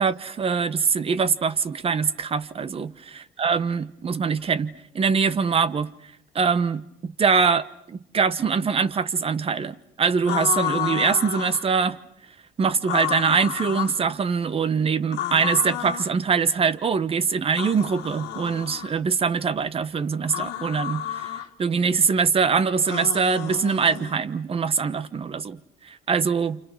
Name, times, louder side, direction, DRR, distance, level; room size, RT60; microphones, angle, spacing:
voice 1, 0.0-3.1 3.4-5.9 6.3-12.0 12.6-21.3 21.6-26.6, right 5 dB, 35° right, 1.1 m, -23 dB
sound 1, 10.2-11.7 12.8-14.0 15.1-16.1 17.5-18.9 20.2-21.5 22.8-24.2, left 11 dB, 85° left, 1.7 m, -31 dB
29.0 x 28.0 x 6.2 m
cardioid pair, 110°, 17 cm